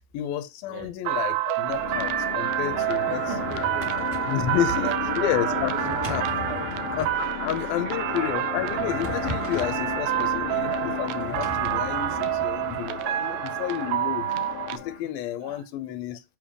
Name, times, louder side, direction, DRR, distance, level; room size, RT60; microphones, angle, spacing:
voice 1, 0.1-3.2 4.3-5.7 6.1-6.4 6.9-14.3 14.7-16.2, left 11 dB, 85° left, 2.5 m, -30 dB
sound 1, 1.0-14.8, right 15 dB, 80° right, 1.9 m, -28 dB
sound 2, 1.7-15.0, left 7 dB, 55° left, 1.5 m, -34 dB
Drawer open or close, 3.1-4.4 5.5-7.2 8.5-9.9 11.2-12.8, equal, 30° right, 1.0 m, -38 dB
voice 2, 3.1-4.0 4.5-6.1 6.4-7.0 7.6-8.0 13.1-13.5 15.0-15.1 15.4-15.6, right 9 dB, 65° right, 2.7 m, -40 dB
7.7 x 3.4 x 4.9 m
omnidirectional pair, 4.3 m